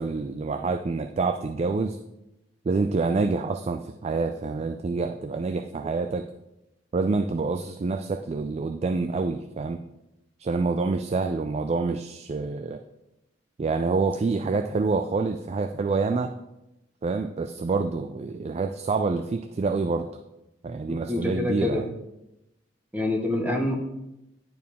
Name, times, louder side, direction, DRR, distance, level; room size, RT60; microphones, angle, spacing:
voice 1, 0.0-2.0 2.7-6.2 6.9-9.8 10.4-12.8 13.6-16.3 17.0-20.1 20.6-21.8, right 4 dB, 35° right, 7 dB, 0.3 m, -27 dB
voice 2, 20.9-21.9 22.9-23.7, left 2 dB, 10° right, 1 dB, 1.0 m, -26 dB
10.0 x 4.7 x 3.5 m, 0.90 s
head